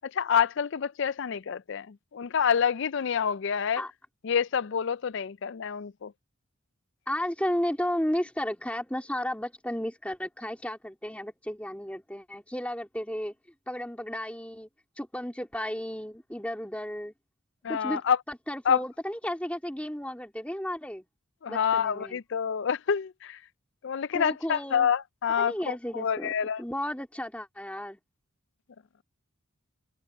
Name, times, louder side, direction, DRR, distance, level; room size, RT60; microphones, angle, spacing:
voice 1, 0.1-3.8 4.2-6.1 17.6-18.2 18.7-18.8 21.4-23.4 23.8-26.6, left 7 dB, 55° left, 0.4 m, -27 dB
voice 2, 7.1-13.3 13.7-14.7 15.0-17.1 17.7-18.0 18.3-21.0 21.5-22.2 24.1-24.9 25.4-26.3 26.6-28.0, equal, 5° left, 3.3 m, -33 dB
head